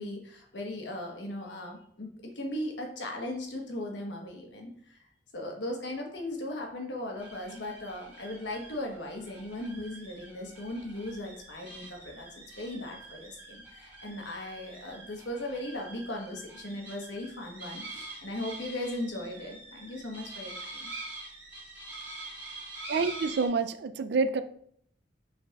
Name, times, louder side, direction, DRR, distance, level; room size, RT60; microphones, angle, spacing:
voice 1, 0.0-5.0 5.3-20.9, left 1 dB, 85° left, 1 dB, 1.1 m, -38 dB
sound 1, 7.2-23.5, right 2 dB, 10° right, 1.8 m, -45 dB
voice 2, 22.9-24.4, right 4 dB, 65° right, 12 dB, 0.4 m, -27 dB
5.6 x 4.0 x 2.3 m, 0.64 s
head